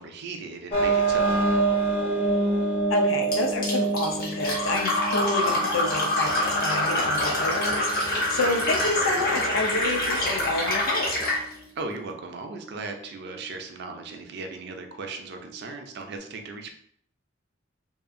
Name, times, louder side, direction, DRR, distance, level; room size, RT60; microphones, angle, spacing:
voice 1, 0.0-1.4 11.8-16.7, right 3 dB, 55° right, 4 dB, 0.4 m, -37 dB
sound 1, 0.7-16.2, right 3 dB, 30° left, 0.5 m, -29 dB
voice 2, 2.9-11.1, left 2 dB, 80° left, 3 dB, 0.5 m, -29 dB
Fill (with liquid), 3.3-11.4, left 1 dB, 50° left, 0.8 m, -26 dB
2.7 x 2.3 x 2.5 m, 0.64 s
head